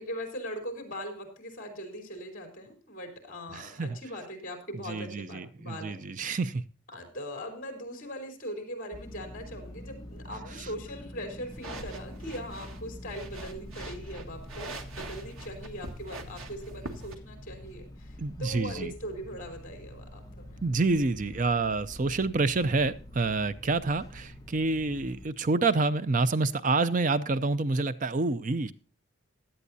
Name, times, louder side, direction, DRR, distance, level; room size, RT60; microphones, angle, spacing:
voice 1, 0.0-6.0 6.9-20.7, equal, 40° left, 5 dB, 3.8 m, -40 dB
voice 2, 3.5-3.9 4.9-6.6 18.2-18.9 20.6-28.7, right 3 dB, 40° right, 13 dB, 0.5 m, -28 dB
sound 1, 8.9-25.3, left 1 dB, 20° left, 1.3 m, -45 dB
sound 2, 11.5-17.1, right 2 dB, 90° right, 1.7 m, -44 dB
16.5 x 11.0 x 2.7 m, 0.38 s
head